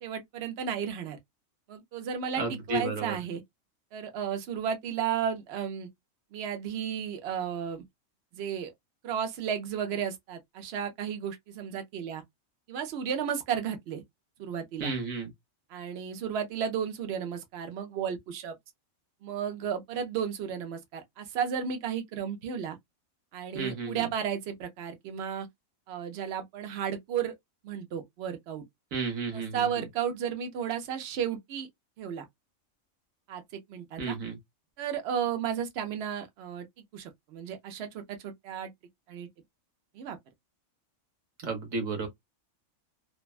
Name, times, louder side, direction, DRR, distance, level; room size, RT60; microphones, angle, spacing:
voice 1, 0.0-1.2 1.7-3.4 3.9-5.9 6.3-7.8 8.3-8.7 9.0-12.2 12.7-14.0 14.4-14.9 15.7-18.5 19.2-22.8 23.3-25.5 25.9-27.3 27.6-28.6 29.3-31.7 32.0-32.2 33.3-33.4 33.7-34.1 34.8-36.7 36.9-38.7 39.1-39.3 39.9-40.2, right 8 dB, 60° right, 0.8 m, -33 dB
voice 2, 2.4-3.2 14.8-15.3 23.5-24.1 28.9-29.8 34.0-34.4 41.4-42.1, right 3 dB, 75° right, 1.5 m, -32 dB
3.3 x 2.1 x 2.3 m
omnidirectional pair, 1.4 m